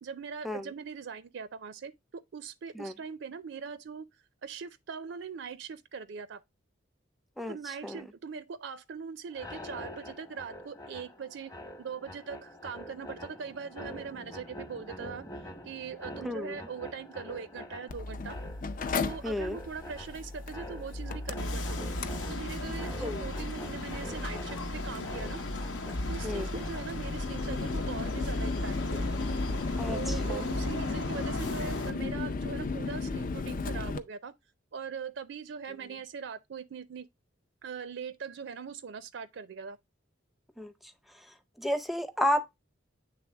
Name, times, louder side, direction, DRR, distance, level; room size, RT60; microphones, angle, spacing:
voice 1, 0.0-4.1 4.4-6.4 7.5-11.5 11.8-15.2 15.6-18.4 19.0-21.9 22.3-25.4 26.1-29.1 29.9-34.3 34.7-37.1 37.6-39.8, right 6 dB, 70° right, 0.4 m, -41 dB
voice 2, 7.4-8.0 16.2-16.6 19.2-19.6 23.0-23.2 26.2-26.6 29.8-30.5 40.6-40.7 41.6-42.6, left 1 dB, ahead, 0.6 m, -32 dB
sound 1, 9.3-27.2, equal, 20° left, 1.0 m, -46 dB
Mechanical fan, 17.9-34.0, left 3 dB, 45° left, 0.5 m, -35 dB
sound 2, 21.4-31.9, left 2 dB, 80° left, 0.9 m, -36 dB
8.3 x 3.4 x 3.3 m
head